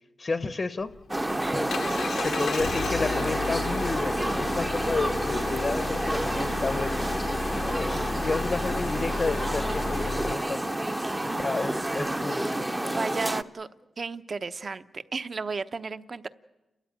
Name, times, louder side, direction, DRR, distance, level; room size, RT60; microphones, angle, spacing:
voice 1, 0.2-0.9 1.4-7.0 7.6-12.6, left 3 dB, 40° left, 11 dB, 0.8 m, -32 dB
Engine, 0.8-10.3, left 5 dB, 80° left, 1.0 m, -33 dB
sound 1, 1.1-13.4, right 1 dB, 15° right, 0.7 m, -29 dB
voice 2, 12.8-13.7 14.0-16.3, right 4 dB, 45° right, 11 dB, 0.8 m, -33 dB
29.5 x 13.5 x 9.3 m, 1.0 s
wide cardioid pair, 110°, 0 cm